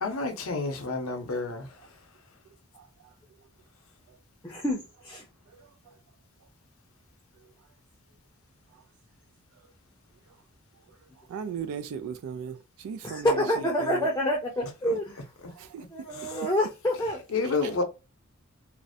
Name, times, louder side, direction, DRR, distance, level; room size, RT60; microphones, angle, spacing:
voice 1, 0.0-1.7 16.2-16.3 17.3-17.8, left 3 dB, 70° left, 0.6 m, -29 dB
voice 2, 4.4-5.2 13.0-15.2 15.9-17.2, equal, 10° left, 0.5 m, -27 dB
voice 3, 11.3-13.4 13.8-14.1 15.6-15.9 17.6-17.7, right 7 dB, 80° right, 0.3 m, -37 dB
2.4 x 2.0 x 2.5 m
head